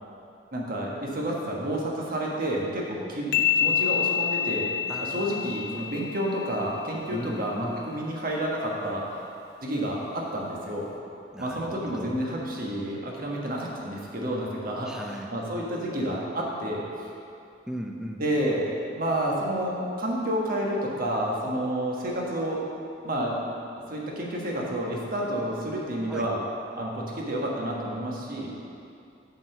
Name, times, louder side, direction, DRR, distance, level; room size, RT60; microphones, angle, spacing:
voice 1, 0.5-4.7 5.0-9.0 9.6-10.9 11.4-14.9 15.3-16.8 18.2-22.6 23.0-23.4 23.9-26.4 26.7-28.5, right 1 dB, 50° right, -2 dB, 1.3 m, -30 dB
sound 1, 3.3-6.9, left 9 dB, 60° left, 0.5 m, -27 dB
voice 2, 4.9-5.6 7.1-7.8 11.3-12.2 14.8-15.3 17.7-18.2 26.1-26.3, equal, 5° right, 2 dB, 0.5 m, -37 dB
7.2 x 4.7 x 6.5 m, 2.6 s
head